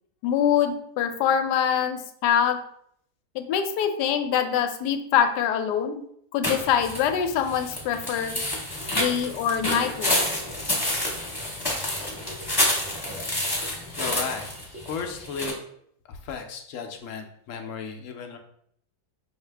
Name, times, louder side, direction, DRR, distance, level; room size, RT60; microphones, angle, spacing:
voice 1, 0.2-2.6 3.3-6.0 6.3-8.4 8.9-10.2, left 8 dB, 85° left, 7 dB, 1.2 m, -24 dB
sound 1, 6.4-15.5, left 1 dB, 15° left, 0.9 m, -29 dB
voice 2, 14.0-14.5 14.9-15.5 16.1-18.4, left 6 dB, 65° left, 4 dB, 0.8 m, -34 dB
5.7 x 2.7 x 3.3 m, 0.69 s
omnidirectional pair, 1.7 m